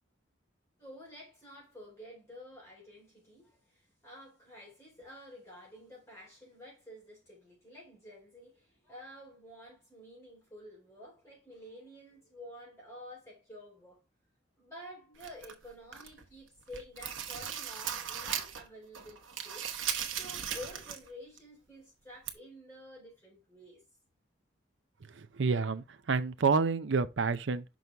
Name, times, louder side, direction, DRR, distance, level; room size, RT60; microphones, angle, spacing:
voice 1, 0.8-14.0 14.6-19.7 20.1-23.8, equal, 15° left, 3.9 m, -50 dB
sound 1, 15.2-16.2 16.6-18.7 18.9-21.1 21.4-21.5 22.3-22.4, right 8 dB, 85° right, 1.1 m, -37 dB
voice 2, 25.2-27.6, right 4 dB, 70° right, 0.5 m, -29 dB
6.1 x 5.4 x 3.4 m
head